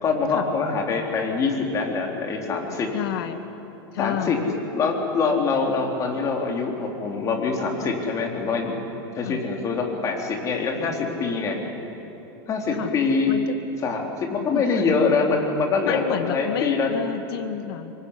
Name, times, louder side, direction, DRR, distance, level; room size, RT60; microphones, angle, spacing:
voice 1, 0.0-2.9 4.0-4.4 4.7-8.8 9.1-11.6 12.5-13.3 13.8-16.0 16.3-16.9, left 4 dB, 25° left, 1 dB, 3.9 m, -24 dB
voice 2, 2.9-3.4 3.9-4.6 9.2-9.4 12.7-12.9 13.3-13.6 14.5-14.8 15.8-17.9, left 9 dB, 65° left, 7 dB, 2.1 m, -30 dB
26.0 x 23.0 x 10.0 m, 3.0 s
supercardioid pair, 155°, 13 cm